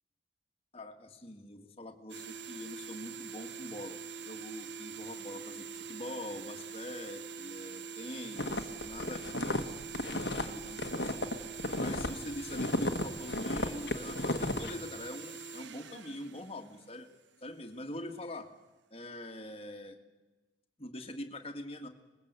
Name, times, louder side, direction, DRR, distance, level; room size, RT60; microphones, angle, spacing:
voice 1, 0.7-11.3 11.8-17.1 17.4-18.5 18.9-20.0 20.8-21.9, left 1 dB, 30° left, 4 dB, 2.0 m, -44 dB
sound 1, 2.1-17.3, right 5 dB, 70° right, 1.1 m, -44 dB
sound 2, 8.4-12.1 12.4-14.7, left 1 dB, 60° left, 1.6 m, -33 dB
26.0 x 20.5 x 8.2 m, 1.2 s
head